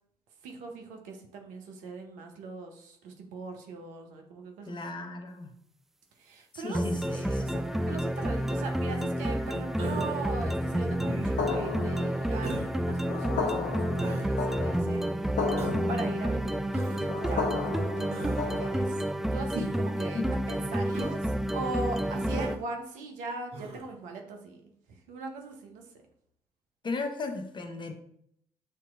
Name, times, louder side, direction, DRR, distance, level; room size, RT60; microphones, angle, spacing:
voice 1, 0.4-4.8 6.2-6.8 7.1-15.6 15.9-19.0 19.3-24.7 25.1-25.8, right 3 dB, 70° right, 3 dB, 0.7 m, -40 dB
voice 2, 4.7-5.5 6.5-7.6 20.1-20.4 26.8-27.9, left 3 dB, 35° left, 6 dB, 0.8 m, -36 dB
sound 1, 6.7-22.6, right 1 dB, 5° right, 0.3 m, -30 dB
Human voice, 9.8-10.3 11.0-11.5 12.4-12.7 14.0-14.3 15.6-15.9 16.7-17.0 18.1-18.5 19.5-19.9 20.9-21.2 22.3-22.6 23.5-23.9, right 2 dB, 50° right, 1.1 m, -37 dB
sound 2, 11.4-19.2, left 4 dB, 70° left, 0.7 m, -35 dB
6.5 x 2.8 x 2.5 m, 0.70 s
hypercardioid pair, 45°, 14 cm